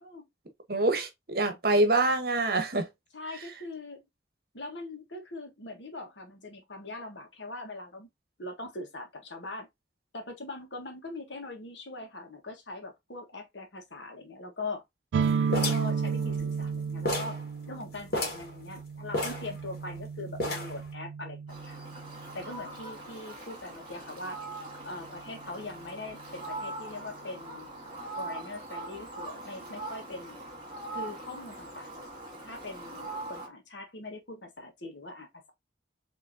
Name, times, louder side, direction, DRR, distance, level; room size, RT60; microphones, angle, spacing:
voice 1, 0.7-2.9, right 2 dB, 55° right, 1.0 m, -25 dB
voice 2, 3.1-4.0 4.5-8.1 8.4-9.7 10.1-14.8 15.5-17.4 17.7-21.4 21.6-21.8 22.3-24.4 24.8-27.7 28.2-30.4 30.9-32.1 32.4-35.5, left 2 dB, 75° left, 1.4 m, -41 dB
sound 1, 15.1-22.7, right 6 dB, 85° right, 0.3 m, -33 dB
sound 2, 15.5-16.7 17.1-17.4 17.7-17.8 18.1-18.5 19.1-20.0 20.4-20.9, left 2 dB, 55° left, 1.7 m, -32 dB
Fowl, 21.5-33.5, right 2 dB, 25° right, 2.3 m, -42 dB
5.0 x 3.0 x 2.7 m
head